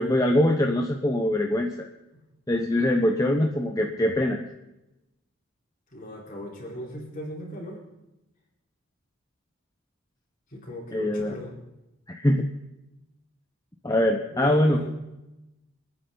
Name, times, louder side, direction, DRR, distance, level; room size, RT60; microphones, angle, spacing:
voice 1, 0.0-1.9 2.5-4.4 10.9-11.4 12.1-12.5 13.8-14.8, left 1 dB, 15° left, 2 dB, 0.8 m, -23 dB
voice 2, 5.9-7.8 10.5-11.5 14.3-14.9, equal, 40° left, -2 dB, 4.2 m, -37 dB
27.5 x 9.7 x 3.9 m, 0.94 s
head